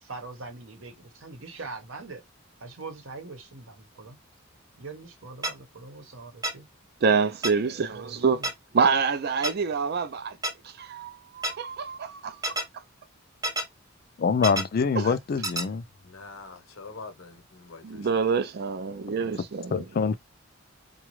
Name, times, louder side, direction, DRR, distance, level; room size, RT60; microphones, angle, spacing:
voice 1, 0.0-2.2 2.6-4.2 4.8-6.7 7.9-8.5, right 3 dB, 70° right, 0.9 m, -42 dB
sound 1, 5.4-5.5 6.4-6.5 7.4-7.5 8.4-8.5 9.4-9.5 10.4-10.5 11.4-11.5 12.4-12.6 13.4-13.6 14.4-14.6 15.4-15.6, right 1 dB, 20° right, 0.7 m, -27 dB
voice 2, 7.0-8.4 8.7-10.4 10.8-12.6 15.0-15.1 17.8-19.8, right 5 dB, 50° right, 0.4 m, -26 dB
voice 3, 14.2-15.8 19.7-20.1, left 5 dB, 45° left, 0.4 m, -25 dB
voice 4, 16.0-18.4, left 4 dB, 80° left, 0.9 m, -45 dB
4.0 x 2.3 x 3.0 m
head